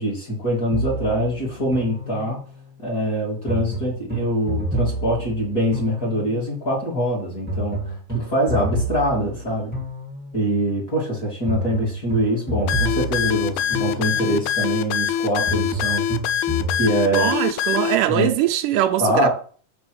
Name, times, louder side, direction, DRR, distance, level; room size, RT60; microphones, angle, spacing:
voice 1, 0.0-2.4 2.8-9.7 10.3-16.0 16.8-17.3 18.1-18.3 19.0-19.3, equal, 25° left, 2.7 m, -23 dB
sound 1, 0.7-2.6 3.5-6.5 7.5-10.6 11.5-14.5 15.5-16.8, right 1 dB, 5° right, 1.0 m, -29 dB
sound 2, 12.7-18.0, left 9 dB, 85° left, 1.6 m, -23 dB
voice 2, 17.1-19.3, right 13 dB, 85° right, 2.1 m, -21 dB
6.6 x 6.0 x 4.7 m
omnidirectional pair, 3.8 m